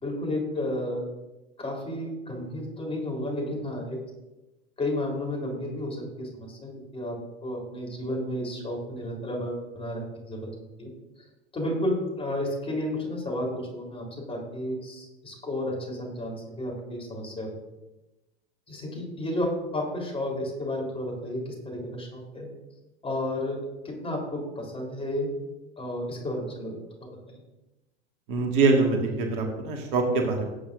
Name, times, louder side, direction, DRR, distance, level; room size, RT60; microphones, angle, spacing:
voice 1, 0.0-1.1 1.6-4.0 4.8-7.2 7.4-10.4 10.8-10.9 11.5-17.5 18.7-22.5 23.0-25.3 25.8-26.8, left 1 dB, 20° left, 0 dB, 3.8 m, -32 dB
voice 2, 28.3-30.5, right 3 dB, 55° right, 2 dB, 1.9 m, -24 dB
18.0 x 8.6 x 2.6 m, 1.0 s
figure-of-eight pair, 80°, 31 cm